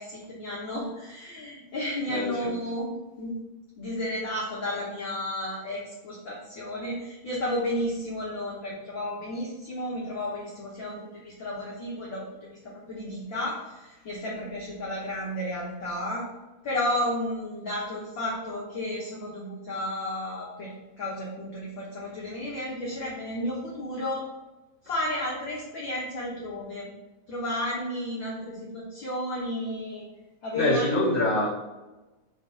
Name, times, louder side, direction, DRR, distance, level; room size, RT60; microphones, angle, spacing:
voice 1, 0.0-3.4 3.8-16.3 16.6-24.4 24.8-26.9 27.3-30.0 30.4-30.9, left 1 dB, 75° left, -4 dB, 1.0 m, -32 dB
voice 2, 2.1-2.6 30.5-31.5, left 2 dB, 25° right, -10 dB, 1.4 m, -25 dB
5.3 x 4.1 x 4.7 m, 1.1 s
omnidirectional pair, 3.8 m